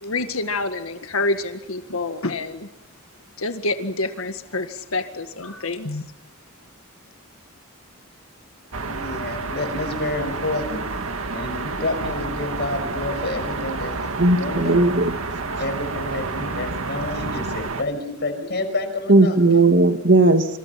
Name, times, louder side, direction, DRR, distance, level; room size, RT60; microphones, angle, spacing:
voice 1, 0.0-2.7 3.4-6.0, left 2 dB, 85° left, 7 dB, 1.9 m, -27 dB
sound 1, 8.7-17.8, right 3 dB, 80° right, 1.9 m, -29 dB
voice 2, 8.8-10.8 11.3-14.8 15.6-19.4, left 2 dB, 55° left, 7 dB, 5.8 m, -29 dB
voice 3, 14.2-15.2 19.1-20.5, right 2 dB, 60° right, 7 dB, 2.1 m, -16 dB
27.5 x 27.0 x 5.9 m, 0.83 s
head